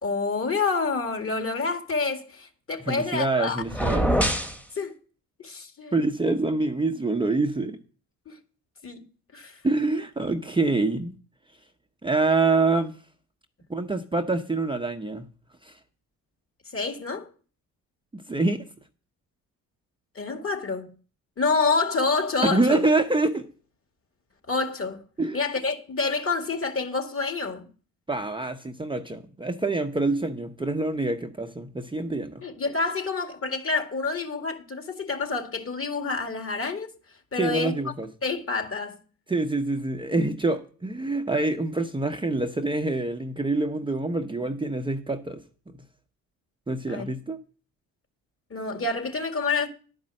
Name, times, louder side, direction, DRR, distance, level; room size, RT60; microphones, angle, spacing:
voice 1, 0.0-3.6 4.8-4.9 5.4-5.9 8.3-8.4 8.8-9.0 9.3-9.6 16.7-17.3 20.2-20.9 21.4-22.8 24.5-25.0 25.3-27.7 32.4-36.9 37.3-37.9 38.2-39.0 46.9-47.1 48.5-49.7, left 4 dB, 35° left, 2.1 m, -28 dB
voice 2, 2.8-4.3 5.9-7.8 9.6-11.1 12.0-12.9 13.7-15.3 15.6-15.8 18.1-18.6 22.4-23.5 25.2-25.4 28.1-32.4 37.4-38.1 39.3-45.4 46.7-47.4, right 3 dB, 15° right, 0.8 m, -26 dB
sound 1, 3.7-4.6, equal, 5° left, 1.3 m, -23 dB
11.0 x 5.3 x 7.6 m
supercardioid pair, 65°, 36 cm